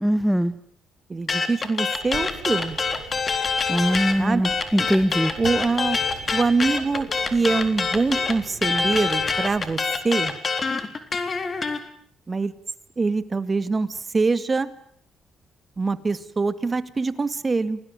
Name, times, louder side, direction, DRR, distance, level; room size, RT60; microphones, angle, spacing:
voice 1, 0.0-0.5 3.7-5.3, equal, ahead, 12 dB, 1.1 m, -21 dB
voice 2, 1.1-2.8 4.2-4.5 5.4-6.0 6.3-10.3 12.3-12.5 13.0-14.7 15.8-17.8, right 4 dB, 30° right, 13 dB, 2.1 m, -24 dB
sound 1, 1.3-4.2 4.4-11.8, left 4 dB, 35° left, 3.7 m, -25 dB
sound 2, 2.0-9.8, right 7 dB, 85° right, 7.6 m, -42 dB
29.0 x 20.0 x 9.2 m, 0.64 s
cardioid pair, 90°, 0 cm